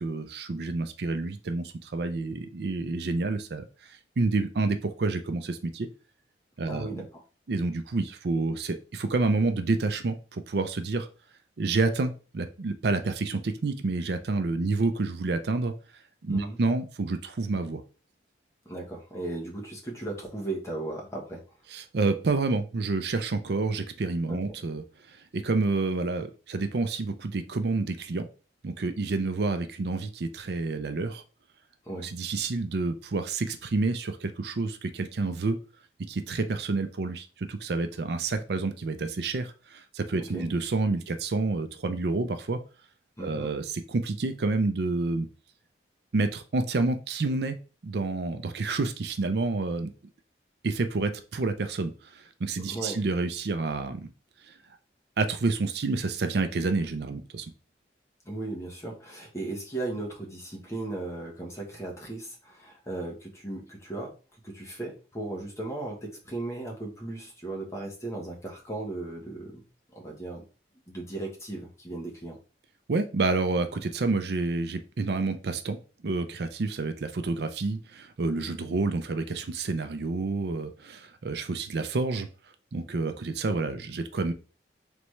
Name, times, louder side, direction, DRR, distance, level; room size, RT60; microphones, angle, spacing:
voice 1, 0.0-5.9 6.6-6.9 7.5-11.1 11.6-15.7 16.2-17.8 21.7-28.3 28.6-31.2 32.0-35.6 36.1-42.6 43.2-45.3 46.1-47.6 47.8-49.9 50.6-54.1 54.4-54.5 55.2-57.5 72.9-75.8 76.0-82.3 82.7-84.3, right 3 dB, 65° right, 8 dB, 0.5 m, -29 dB
voice 2, 6.7-7.2 16.3-16.6 18.6-21.4 24.3-24.4 31.8-32.1 40.2-40.4 43.2-43.5 52.7-53.0 58.2-64.1 64.4-69.6 69.9-70.4 70.9-72.4 78.6-78.7, right 2 dB, 15° left, -1 dB, 1.1 m, -36 dB
4.0 x 3.4 x 3.1 m, 0.35 s
head